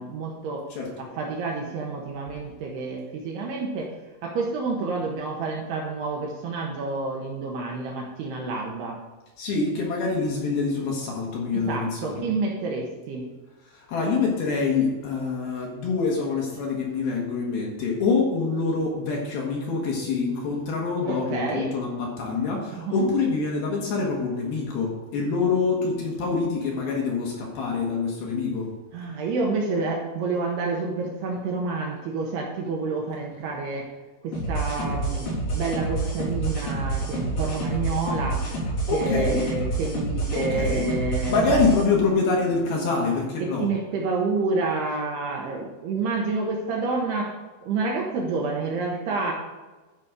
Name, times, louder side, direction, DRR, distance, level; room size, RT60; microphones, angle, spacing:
voice 1, 0.0-0.6 1.0-3.9 4.2-9.0 11.5-13.3 21.1-21.7 22.8-23.1 28.9-33.8 34.2-38.4 38.9-41.4 43.4-47.3 47.6-49.3, right 3 dB, 75° right, -1 dB, 2.6 m, -29 dB
voice 2, 0.7-1.0 9.4-12.2 13.7-28.7 38.9-39.4 40.3-40.9 41.3-43.7, left 4 dB, 65° left, -2 dB, 2.8 m, -25 dB
sound 1, 34.3-41.8, right 2 dB, 85° left, 6.1 m, -28 dB
12.5 x 5.1 x 5.1 m, 1.2 s
omnidirectional pair, 5.6 m